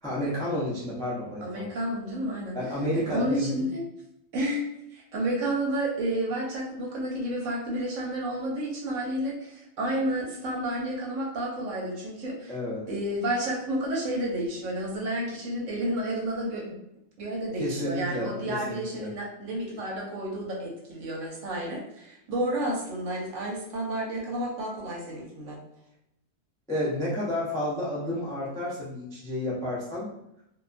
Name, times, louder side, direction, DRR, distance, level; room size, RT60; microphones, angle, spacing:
voice 1, 0.0-1.7 2.5-3.7 12.5-12.8 17.6-19.1 26.7-30.1, left 1 dB, 5° left, -7 dB, 0.3 m, -31 dB
voice 2, 1.4-2.6 3.0-3.8 4.3-4.6 4.9-12.5 12.9-16.8 17.2-25.6, right 1 dB, 65° right, -2 dB, 1.0 m, -31 dB
2.6 x 2.2 x 2.4 m, 0.80 s
omnidirectional pair, 1.5 m